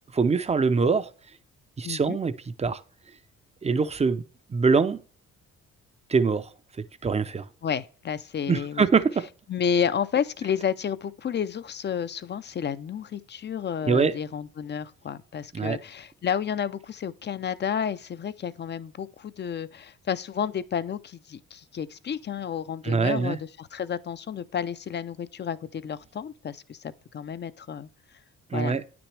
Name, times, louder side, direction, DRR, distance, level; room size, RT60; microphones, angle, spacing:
voice 1, 0.1-1.1 1.8-2.3 2.6-2.8 3.6-4.2 4.5-5.0 6.1-6.5 6.8-7.5 8.5-9.3 13.8-14.1 15.5-15.8 22.8-23.4 28.5-28.8, right 5 dB, 20° right, 0.5 m, -23 dB
voice 2, 1.8-2.2 7.6-8.9 9.5-27.9 28.5-28.9, left 7 dB, 35° left, 0.5 m, -31 dB
9.3 x 6.0 x 3.3 m
cardioid pair, 90°, 30 cm